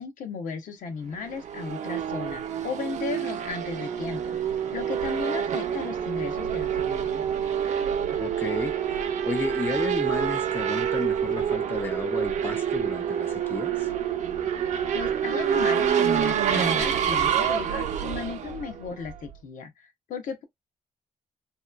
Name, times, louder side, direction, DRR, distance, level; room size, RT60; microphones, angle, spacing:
voice 1, 0.0-4.4 4.7-7.2 14.9-20.4, left 5 dB, 75° left, 0.8 m, -35 dB
Race car auto racing / Accelerating revving vroom, 1.2-19.3, right 8 dB, 60° right, 0.5 m, -27 dB
voice 2, 8.2-13.9, left 4 dB, 15° left, 0.3 m, -33 dB
2.9 x 2.2 x 2.2 m
wide cardioid pair, 165°, 14 cm